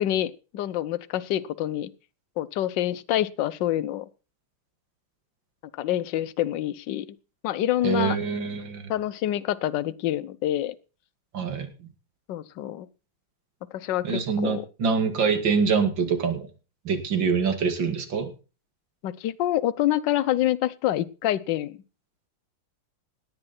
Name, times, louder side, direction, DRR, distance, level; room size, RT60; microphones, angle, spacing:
voice 1, 0.0-1.9 2.4-4.0 5.7-7.1 7.4-8.2 8.9-10.7 12.3-12.9 13.7-14.6 19.0-21.8, left 12 dB, 65° left, 16 dB, 1.3 m, -26 dB
voice 2, 7.8-8.9 11.3-11.7 14.0-16.5 16.8-18.3, right 5 dB, 55° right, 7 dB, 2.9 m, -25 dB
17.5 x 11.0 x 4.4 m, 0.35 s
omnidirectional pair, 2.4 m